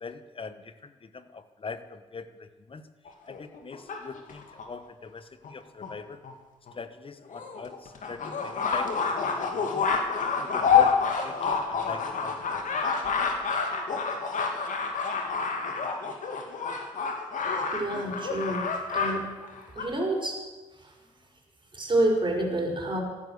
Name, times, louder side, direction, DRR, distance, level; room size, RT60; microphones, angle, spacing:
voice 1, 0.0-2.9 3.2-6.2 6.7-9.9 10.4-12.6, left 4 dB, 35° left, 12 dB, 1.1 m, -42 dB
sound 1, 3.0-4.6 5.4-5.5 5.8-5.9 6.2-6.3 6.7-6.8 7.3-19.1 19.4-19.8, left 5 dB, 55° left, 2.4 m, -28 dB
voice 2, 17.7-18.6 18.9-19.2 19.8-20.4 21.7-23.0, right 1 dB, 30° right, 0 dB, 5.3 m, -27 dB
14.5 x 11.0 x 6.6 m, 1.2 s
hypercardioid pair, 50°, 16 cm